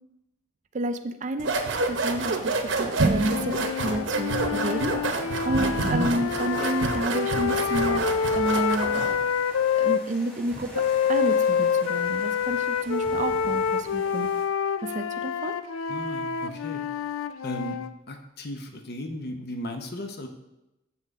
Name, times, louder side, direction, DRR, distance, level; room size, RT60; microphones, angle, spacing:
voice 1, 0.7-1.5 1.8-9.1 9.8-14.3 14.8-15.6, right 2 dB, 35° right, 8 dB, 0.5 m, -30 dB
sound 1, 1.4-9.2, right 3 dB, 65° right, 0.9 m, -28 dB
sound 2, 3.1-10.0 10.7-17.9, left 7 dB, 85° left, 0.4 m, -27 dB
voice 2, 5.8-6.2 15.9-16.9 17.4-17.8 18.1-20.3, left 1 dB, 50° left, 5 dB, 0.8 m, -36 dB
sound 3, 6.4-14.4, right 1 dB, 5° left, 1.7 m, -46 dB
7.7 x 7.3 x 3.6 m, 0.91 s
head